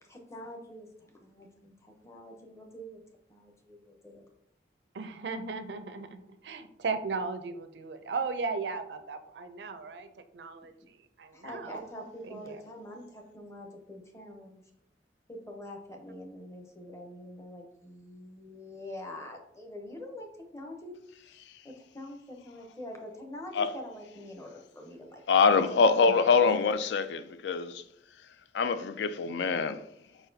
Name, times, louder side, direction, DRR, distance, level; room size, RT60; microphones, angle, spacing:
voice 1, 0.0-3.0 3.3-4.3 11.3-14.6 15.3-20.3 20.5-21.0 21.6-25.2, left 1 dB, 15° left, 0.7 m, -45 dB
voice 2, 4.9-10.1 10.3-12.6 26.1-26.2 26.4-26.6, right 4 dB, 75° right, 0.5 m, -36 dB
voice 3, 25.3-27.8 28.5-29.8, left 5 dB, 80° left, 0.3 m, -24 dB
4.6 x 4.0 x 2.7 m
head